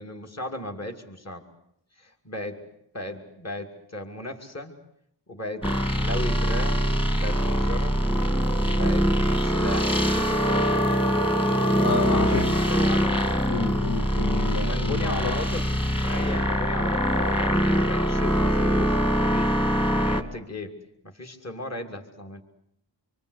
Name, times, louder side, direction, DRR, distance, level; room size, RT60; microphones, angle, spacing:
voice 1, 0.0-1.4 2.0-2.7 2.9-4.7 5.3-5.7 6.0-8.0 8.7-9.1 9.4-10.9 12.1-13.4 14.5-20.8 21.0-22.4, left 1 dB, 35° left, 3 dB, 2.9 m, -36 dB
sound 1, 5.6-20.2, equal, 10° left, 2.0 m, -23 dB
voice 2, 11.8-12.6 13.5-15.4, left 5 dB, 65° left, 3 dB, 1.9 m, -30 dB
26.0 x 24.0 x 8.3 m, 0.75 s
wide cardioid pair, 70°, 44 cm